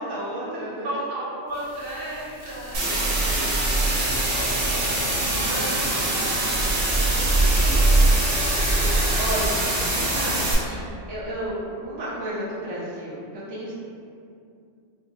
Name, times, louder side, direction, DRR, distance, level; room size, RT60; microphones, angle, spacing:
voice 1, 0.0-0.9 5.4-6.3 7.4-7.9 9.2-9.4 9.8-10.8 11.1-13.2 13.5-13.7, right 1 dB, 25° right, -8 dB, 0.6 m, -33 dB
voice 2, 0.8-9.5, right 1 dB, 55° right, -8 dB, 0.9 m, -36 dB
sound 1, 1.6-9.5, right 2 dB, 25° left, 0.6 m, -25 dB
sound 2, 2.7-10.5, right 1 dB, 80° right, 1.2 m, -25 dB
4.5 x 2.2 x 2.8 m, 2.4 s
omnidirectional pair, 1.2 m